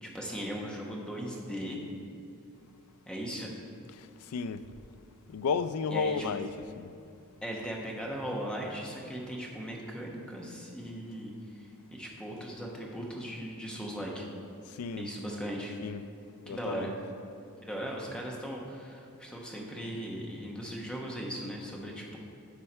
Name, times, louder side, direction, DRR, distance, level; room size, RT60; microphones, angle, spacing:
voice 1, 0.0-1.8 3.1-3.5 5.9-6.2 7.4-14.3 15.0-15.8 16.5-16.9 17.6-22.2, equal, 5° left, 1.1 m, -38 dB
voice 2, 3.9-4.7 5.3-6.5 6.8-6.9 14.7-15.0 15.8-16.0 16.5-17.0, left 5 dB, 75° left, 0.4 m, -33 dB
12.5 x 4.5 x 4.4 m
head